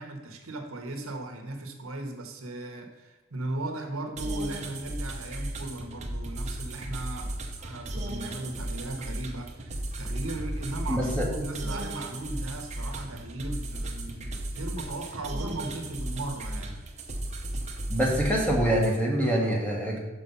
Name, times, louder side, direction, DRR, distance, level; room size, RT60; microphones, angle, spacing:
voice 1, 0.0-16.8, right 2 dB, 70° right, 4 dB, 1.1 m, -37 dB
sound 1, 4.2-19.0, right 1 dB, 30° right, 0.9 m, -35 dB
voice 2, 10.9-11.3 17.9-20.0, equal, 5° left, -2 dB, 1.3 m, -25 dB
6.1 x 5.8 x 5.4 m, 1.2 s
head